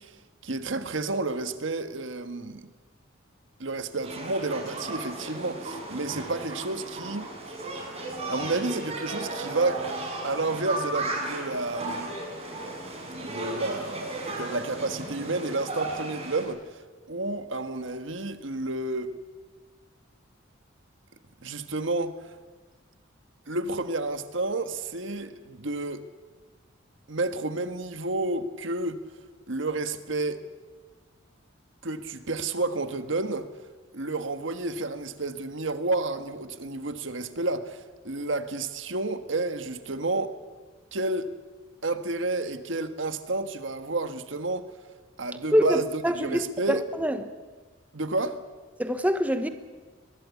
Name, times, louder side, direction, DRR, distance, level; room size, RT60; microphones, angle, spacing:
voice 1, 0.0-2.7 3.6-7.6 8.3-9.8 10.2-12.1 13.2-19.1 21.4-22.3 23.5-26.0 27.1-29.0 29.5-30.4 31.8-33.5 33.9-40.3 40.9-41.3 41.8-44.7 45.2-46.8 47.9-48.4, right 2 dB, 65° right, 1.5 m, -30 dB
sound 1, 4.0-16.4, right 2 dB, 30° right, 6.9 m, -35 dB
voice 2, 45.5-46.4 46.7-47.2 48.8-49.5, equal, 10° right, 1.0 m, -24 dB
22.0 x 21.5 x 8.4 m
head